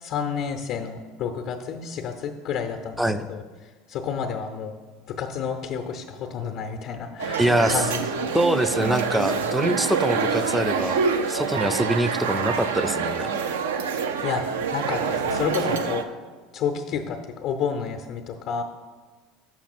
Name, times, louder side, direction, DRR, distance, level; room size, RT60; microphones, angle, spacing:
voice 1, 0.0-3.0 3.3-3.4 3.9-4.7 5.1-7.4 7.7-8.3 14.2-14.4 14.7-16.0 16.5-18.6, left 6 dB, 55° left, 4 dB, 0.6 m, -30 dB
sound 1, 7.2-16.0, right 5 dB, 80° right, 0.5 m, -26 dB
voice 2, 7.4-7.9 8.3-11.0 11.3-13.3, right 1 dB, 5° right, 11 dB, 0.4 m, -24 dB
6.1 x 5.8 x 4.2 m, 1.4 s
hypercardioid pair, 80°, 0 cm